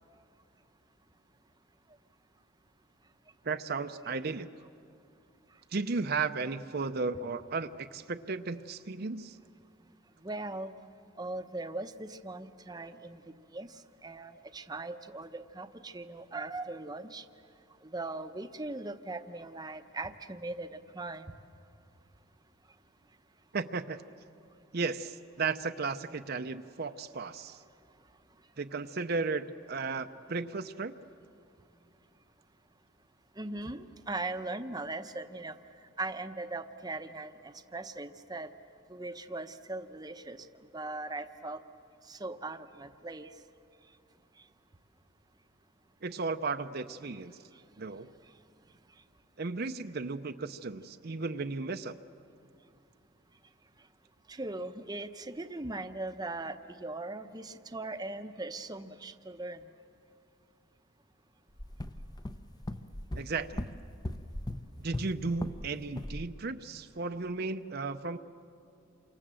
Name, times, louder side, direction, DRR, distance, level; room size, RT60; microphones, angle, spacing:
voice 1, 3.4-4.5 5.7-9.4 23.5-24.0 24.7-27.6 28.6-30.9 46.0-47.4 47.8-48.1 49.4-52.0 63.1-63.6 64.8-68.2, right 4 dB, 50° right, 8 dB, 0.7 m, -35 dB
voice 2, 10.2-10.7 11.2-13.2 13.5-17.2 17.8-21.3 33.4-35.6 36.0-38.5 38.9-40.5 40.7-41.6 42.1-43.3 47.0-47.2 54.3-59.6, right 2 dB, 20° right, 8 dB, 0.8 m, -39 dB
sound 1, 61.6-65.7 66.0-66.3, left 1 dB, 20° left, 0.7 m, -38 dB
29.0 x 25.5 x 7.6 m, 2.6 s
head